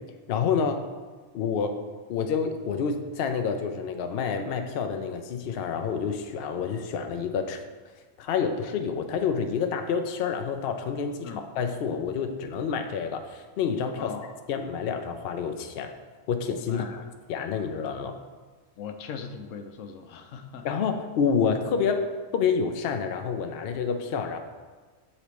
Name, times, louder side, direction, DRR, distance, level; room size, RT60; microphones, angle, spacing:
voice 1, 0.3-0.8 1.3-1.8 2.1-7.6 8.2-14.1 14.5-15.9 16.3-16.8 17.3-18.2 20.6-22.1 22.3-24.4, left 6 dB, 60° left, 6 dB, 0.7 m, -28 dB
voice 2, 14.0-14.3 16.7-17.0 18.8-20.7, left 7 dB, 85° left, 5 dB, 1.0 m, -39 dB
8.1 x 4.1 x 3.0 m, 1.4 s
omnidirectional pair, 1.3 m